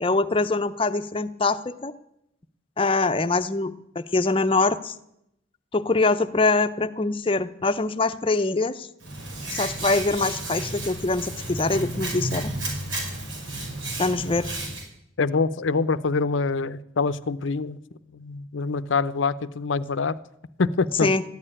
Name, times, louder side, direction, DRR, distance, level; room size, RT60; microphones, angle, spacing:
voice 1, 0.0-1.9 2.8-4.9 5.7-8.9 9.5-12.5 14.0-14.5 21.0-21.2, left 3 dB, 25° left, 0.7 m, -24 dB
Hands, 9.0-14.8, right 2 dB, 90° right, 5.3 m, -32 dB
voice 2, 15.2-17.8 18.1-20.2 20.6-21.1, left 4 dB, 75° left, 0.6 m, -25 dB
14.0 x 8.9 x 10.0 m
head